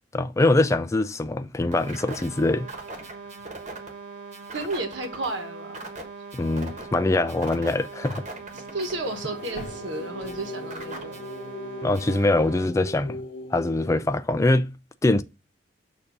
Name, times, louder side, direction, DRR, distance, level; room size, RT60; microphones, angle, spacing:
voice 1, 0.1-2.7 6.3-8.3 11.8-13.2 13.5-14.7 15.0-15.2, left 2 dB, 15° left, 0.3 m, -23 dB
sound 1, 1.7-12.7, right 3 dB, 40° right, 1.2 m, -40 dB
voice 2, 4.5-5.8 8.7-11.1, right 2 dB, 75° right, 1.3 m, -32 dB
sound 2, 8.3-11.0, left 1 dB, 40° left, 1.1 m, -46 dB
sound 3, 8.5-13.9, left 1 dB, 70° left, 1.0 m, -39 dB
6.6 x 2.7 x 5.2 m
head